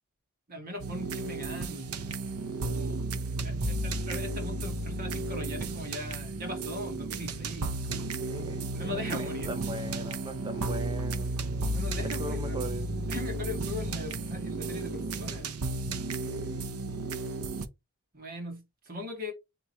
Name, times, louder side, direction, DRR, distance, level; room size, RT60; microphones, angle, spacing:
voice 1, 0.5-1.9 2.7-3.0 3.4-8.1 8.7-9.5 11.7-12.6 13.1-15.6 18.1-19.3, left 1 dB, 40° right, 1.8 m, -40 dB
sound 1, 0.8-17.6, right 2 dB, 85° right, 0.7 m, -33 dB
voice 2, 7.7-11.3 12.0-12.9 15.0-15.3 16.3-16.7, right 1 dB, 20° right, 0.4 m, -40 dB
3.6 x 3.0 x 4.1 m
head